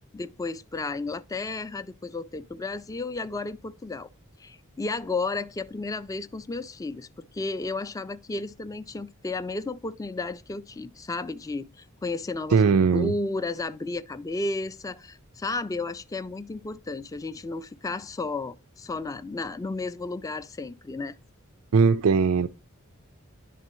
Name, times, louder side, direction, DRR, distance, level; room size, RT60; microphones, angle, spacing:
voice 1, 0.1-4.1 4.4-7.1 7.3-21.2, left 3 dB, 15° left, 0.3 m, -33 dB
voice 2, 12.5-13.1 21.7-22.5, right 5 dB, 85° right, 0.4 m, -19 dB
11.0 x 3.7 x 3.0 m
head